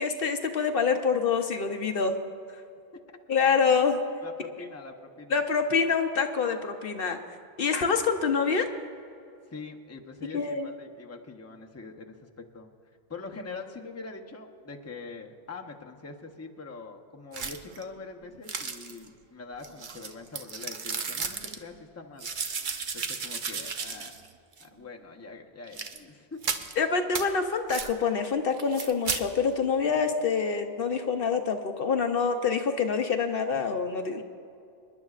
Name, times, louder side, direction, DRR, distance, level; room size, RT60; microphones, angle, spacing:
voice 1, 0.0-2.2 3.3-4.0 5.3-7.2 7.6-8.7 10.3-10.7 26.8-34.2, left 5 dB, 65° left, 6 dB, 0.8 m, -26 dB
voice 2, 4.2-5.4 9.5-12.7 13.1-22.3 22.9-24.2 24.6-26.4, left 4 dB, 15° left, 2 dB, 0.7 m, -43 dB
sound 1, 17.3-17.8 18.5-19.1 19.6-21.6 22.2-24.3 24.6-24.7 25.7-26.0 26.4-26.7 27.1-27.3 27.7-27.9 28.6-29.2, right 5 dB, 55° right, 0.9 m, -34 dB
27.5 x 10.5 x 2.4 m, 2.5 s
omnidirectional pair, 1.1 m